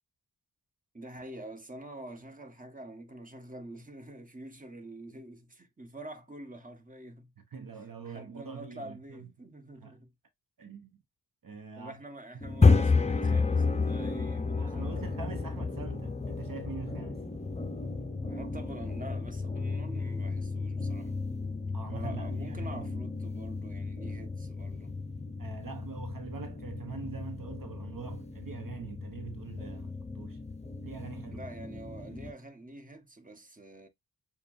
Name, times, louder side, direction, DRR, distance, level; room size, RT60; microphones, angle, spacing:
voice 1, 0.9-7.3 8.0-10.1 11.8-15.2 18.2-21.1 21.9-24.9 31.3-33.9, right 1 dB, 20° right, 1.3 m, -46 dB
voice 2, 7.4-9.3 9.8-10.0 10.6-10.9 11.4-12.0 14.6-17.2 21.7-23.0 25.4-30.4 30.8-31.4, right 5 dB, 60° right, 0.9 m, -43 dB
sound 1, 12.4-32.3, left 4 dB, 20° left, 0.7 m, -32 dB
6.8 x 2.4 x 2.5 m
wide cardioid pair, 70°, 38 cm